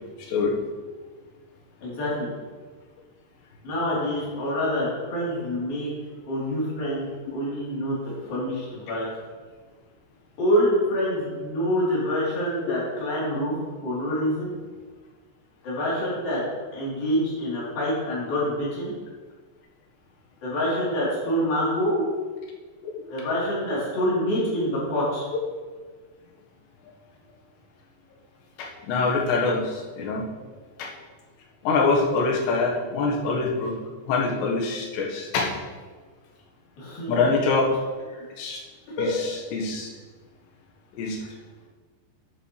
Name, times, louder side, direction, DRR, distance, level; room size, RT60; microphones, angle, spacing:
voice 1, 0.2-0.5 8.3-8.4 22.8-22.9 28.6-30.2 30.8-30.9 31.6-35.5 37.1-37.7 38.4-38.6 39.0-39.2 39.5-39.9 41.0-41.2, left 3 dB, 80° left, -1 dB, 3.3 m, -24 dB
voice 2, 1.8-2.3 3.6-5.9 6.3-9.1 10.4-13.5 13.8-14.5 15.6-16.4 16.7-18.9 20.4-22.0 23.1-25.2 36.8-37.3 38.1-38.2 39.0-39.1, equal, 55° left, -8 dB, 4.9 m, -26 dB
11.0 x 9.0 x 3.2 m, 1.4 s
omnidirectional pair, 5.1 m